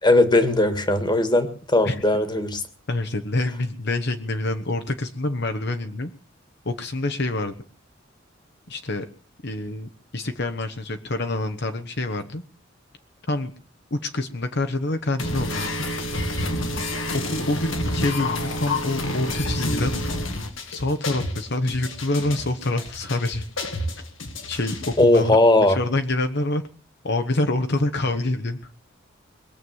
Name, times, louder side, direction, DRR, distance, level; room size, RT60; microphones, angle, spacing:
voice 1, 0.0-2.6 25.0-25.8, left 2 dB, 20° left, 9 dB, 1.8 m, -18 dB
voice 2, 2.9-6.1 6.6-7.5 8.7-9.1 9.4-12.4 13.3-13.5 13.9-15.9 17.1-19.9 20.7-23.5 24.0-24.1 24.5-26.6 27.0-28.6, left 2 dB, 60° left, 7 dB, 1.2 m, -26 dB
sound 1, 15.2-25.2, left 1 dB, 80° left, 2.3 m, -29 dB
22.0 x 7.4 x 8.1 m, 0.43 s
head